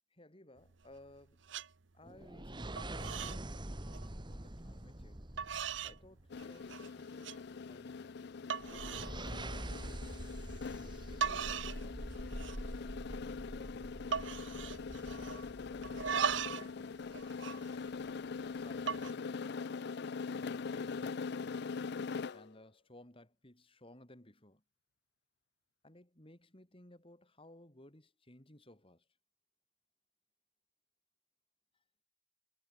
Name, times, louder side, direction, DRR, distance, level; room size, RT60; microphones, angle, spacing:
voice 1, 0.1-1.4 1.9-5.3 5.8-8.2 8.7-8.9 9.3-10.2 10.8-12.2 12.7-17.1 17.5-18.0 18.5-19.8 20.3-21.8 22.3-24.6 25.8-29.0, left 1 dB, 30° left, 3.6 m, -59 dB
sound 1, 0.6-1.2 1.5-1.7 2.1-2.5 2.8-3.4 3.7-4.1 4.8-4.9 5.4-6.0 6.4-6.9 7.2-7.4 7.9-8.0 8.5-9.1 9.5-9.8 10.9-11.0 11.2-11.8 12.1-12.7 13.0-13.1 13.4-13.7 14.1-15.5 15.8-16.7 17.0-18.3 18.7-19.1, right 7 dB, 80° right, 0.9 m, -38 dB
sound 2, 2.0-6.4 8.6-16.5, right 1 dB, 25° right, 1.8 m, -45 dB
sound 3, 6.3-22.5, left 5 dB, 60° left, 0.5 m, -42 dB
head